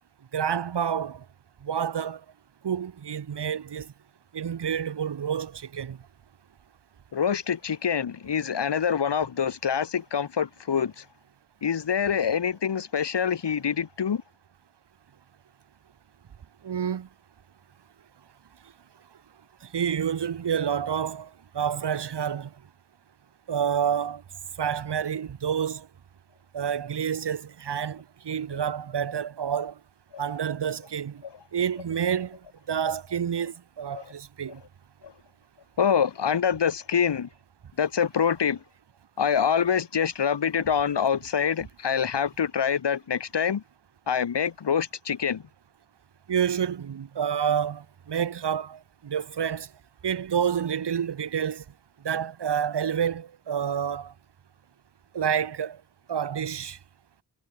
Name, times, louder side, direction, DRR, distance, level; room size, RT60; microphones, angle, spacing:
voice 1, 0.3-1.2 1.6-2.2 2.6-3.9 4.3-6.0 16.6-17.1 19.7-21.3 21.5-22.5 23.5-24.2 24.6-25.9 26.5-29.7 30.2-31.2 31.5-32.4 32.7-34.6 46.3-49.7 50.0-51.6 52.0-54.1 55.1-55.8 56.1-56.8, right 8 dB, 75° right, 2.2 m, -28 dB
voice 2, 7.1-11.0 11.6-14.2 30.1-30.2 31.2-31.3 33.9-34.0 35.0-35.1 35.8-37.3 37.8-38.6 39.2-43.6 44.1-45.4, left 7 dB, 75° left, 4.9 m, -25 dB
cardioid pair, 45°, 42 cm